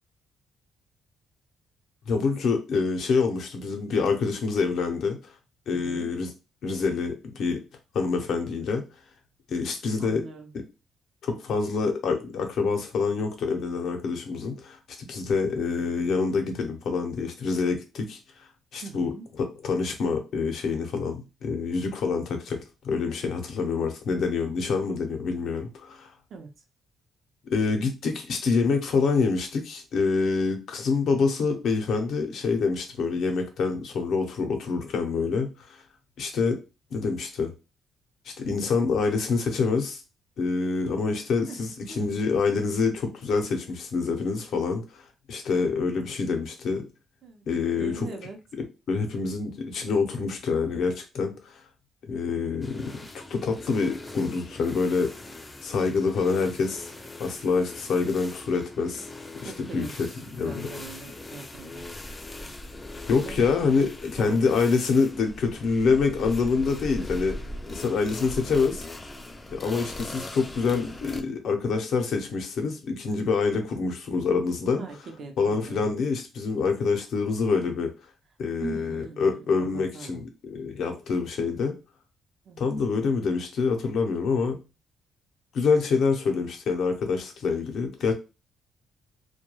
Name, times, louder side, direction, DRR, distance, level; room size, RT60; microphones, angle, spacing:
voice 1, 2.1-5.3 5.7-6.3 6.6-7.6 7.9-8.8 9.5-10.2 11.2-14.8 15.1-26.1 27.5-35.8 36.2-36.6 36.9-37.5 38.3-40.0 40.4-46.8 47.5-48.2 48.9-51.6 52.1-55.1 55.6-56.9 57.2-59.1 59.4-60.1 60.4-60.7 63.1-67.4 67.7-68.8 69.5-74.8 75.4-77.9 78.4-81.7 82.6-84.6 85.5-88.1, left 4 dB, 70° left, 0.6 m, -26 dB
voice 2, 5.7-6.1 10.0-10.5 18.8-19.3 26.3-26.5 41.5-41.6 41.9-42.3 47.2-47.4 47.8-48.4 59.4-61.8 63.2-63.5 64.2-64.4 74.8-75.9 78.6-80.3 82.4-82.7 86.2-86.4, right 4 dB, 60° right, 0.6 m, -41 dB
sound 1, 52.6-71.2, left 1 dB, 20° left, 0.4 m, -40 dB
2.2 x 2.2 x 3.0 m
cardioid pair, 90°, 0 cm